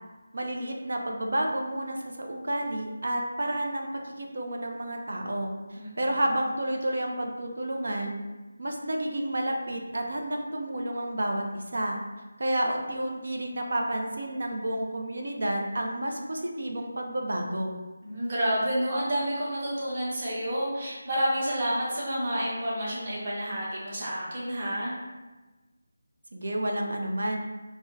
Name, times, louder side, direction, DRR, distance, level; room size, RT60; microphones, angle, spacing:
voice 1, 0.3-8.2 8.6-12.0 12.4-17.8 26.3-27.4, right 1 dB, 65° right, 1 dB, 0.4 m, -30 dB
voice 2, 18.0-25.0, equal, 40° right, -7 dB, 1.0 m, -29 dB
3.4 x 2.1 x 2.7 m, 1.2 s
figure-of-eight pair, 160°, 0 cm